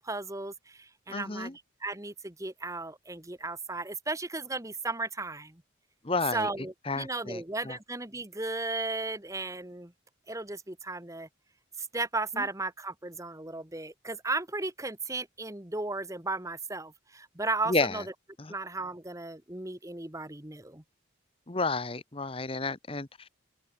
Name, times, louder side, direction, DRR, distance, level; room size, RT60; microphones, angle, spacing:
voice 1, 0.0-1.5 1.8-5.6 6.3-9.9 10.3-11.3 11.8-18.0 18.5-20.8, right 3 dB, 15° right, 1.5 m, -35 dB
voice 2, 1.1-1.5 6.0-6.5 6.9-7.8 12.3-12.4 17.7-18.0 18.4-18.5 21.5-23.3, left 3 dB, 30° left, 1.1 m, -31 dB
head